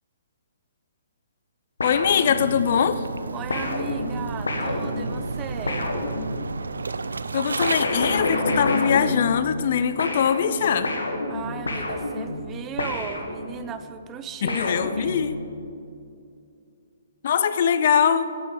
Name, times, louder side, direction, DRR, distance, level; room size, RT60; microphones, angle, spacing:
sound 1, 1.8-2.8 3.5-6.7 7.6-9.7 10.0-13.7 14.5-15.5, left 2 dB, 90° left, 1.6 m, -29 dB
voice 1, 1.8-3.1 7.3-10.9 14.4-15.4 17.2-18.3, left 8 dB, 55° left, 13 dB, 0.5 m, -22 dB
tidepool close, 2.2-7.8, right 4 dB, 85° right, 0.4 m, -32 dB
voice 2, 3.3-5.9 11.3-15.2, right 7 dB, 20° right, 10 dB, 0.5 m, -37 dB
10.0 x 6.2 x 7.6 m, 2.4 s
hypercardioid pair, 140°, 0 cm